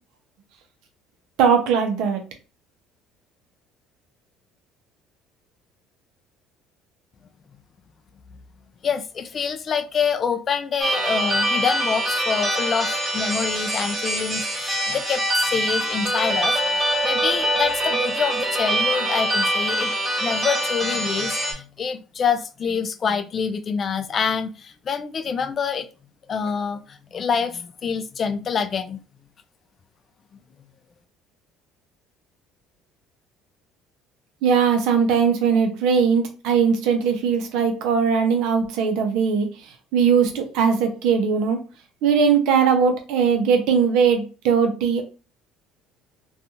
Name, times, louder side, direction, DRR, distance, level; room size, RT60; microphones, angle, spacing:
voice 1, 1.4-2.2 34.4-39.5 39.9-41.6 42.0-45.0, right 6 dB, 75° right, 0.7 m, -19 dB
voice 2, 8.8-19.9 20.2-25.9 26.3-29.0, left 6 dB, 40° left, 0.3 m, -26 dB
sound 1, 10.8-21.5, right 1 dB, 15° right, 1.4 m, -24 dB
2.5 x 2.3 x 2.8 m
cardioid pair, 105°, 0 cm